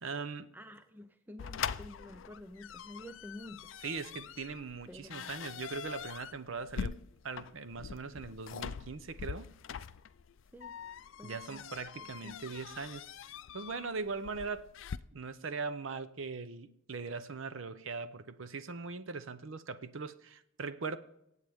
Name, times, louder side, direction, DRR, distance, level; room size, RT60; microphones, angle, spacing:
voice 1, 0.0-0.5 3.8-7.0 7.2-9.5 11.2-13.1 13.5-14.7 15.1-21.0, right 4 dB, 70° right, 0.7 m, -40 dB
voice 2, 0.5-3.7 4.9-5.3 10.5-10.8 11.2-11.6 12.0-12.4, left 1 dB, 10° right, 0.5 m, -50 dB
sound 1, 1.4-15.0, left 7 dB, 70° left, 0.4 m, -43 dB
24.5 x 8.2 x 3.6 m
head